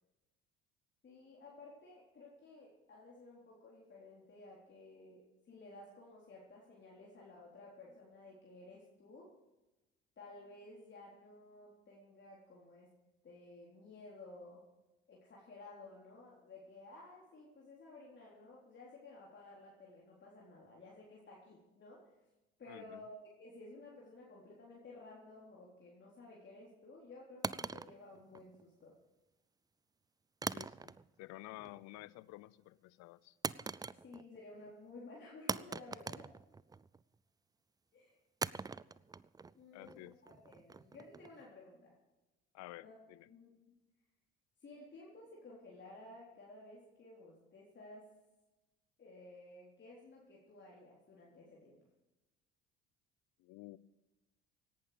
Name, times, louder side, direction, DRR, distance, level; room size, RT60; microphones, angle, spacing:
voice 1, 1.0-9.3 10.2-12.9 13.2-14.6 15.1-22.0 22.6-28.9 34.0-36.3 37.9-38.2 39.5-41.9 42.8-43.0 43.3-43.8 44.6-48.1 49.0-51.8, left 2 dB, 40° left, -4 dB, 3.9 m, -55 dB
voice 2, 22.7-23.0 30.5-30.9 31.2-33.4 39.7-40.1 42.5-43.3 53.4-53.8, left 19 dB, 65° left, 20 dB, 0.7 m, -52 dB
sound 1, 27.4-28.8 30.4-31.3 31.6-32.0 33.4-34.4 34.7-34.8 35.5-37.0 38.4-41.4, right 4 dB, 15° right, 0.4 m, -42 dB
17.5 x 11.5 x 5.1 m, 1.0 s
hypercardioid pair, 65°, 30 cm